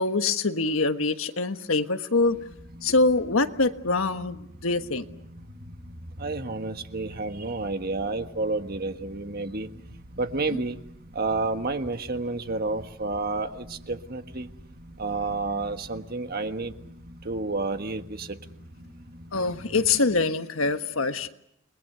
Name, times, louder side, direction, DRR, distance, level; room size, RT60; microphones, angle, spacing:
voice 1, 0.0-2.4 2.8-5.1 10.5-10.6 19.3-21.3, left 3 dB, 85° left, 8 dB, 1.4 m, -24 dB
sound 1, 2.2-20.0, equal, 65° right, 4.3 m, -46 dB
voice 2, 6.2-9.7 10.2-10.8 11.1-14.5 15.0-16.7 17.2-18.4, right 3 dB, 50° right, 8 dB, 1.5 m, -30 dB
30.0 x 21.0 x 6.9 m, 0.75 s
head